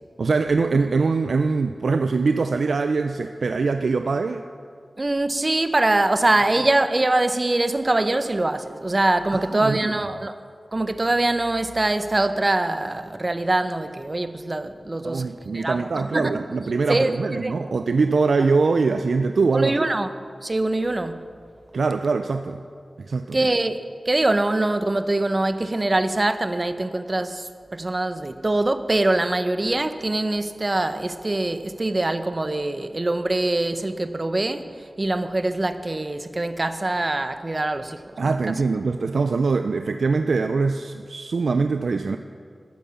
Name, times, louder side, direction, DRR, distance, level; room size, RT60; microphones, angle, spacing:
voice 1, 0.2-4.4 9.3-9.9 15.0-19.9 21.7-22.6 23.0-23.4 38.2-42.2, right 4 dB, 85° right, 0.4 m, -23 dB
voice 2, 5.0-10.3 10.7-16.4 16.9-17.5 19.5-20.1 20.4-21.2 23.3-38.6, right 2 dB, 40° right, 0.8 m, -23 dB
12.5 x 9.1 x 7.1 m
cardioid pair, 45°, 0 cm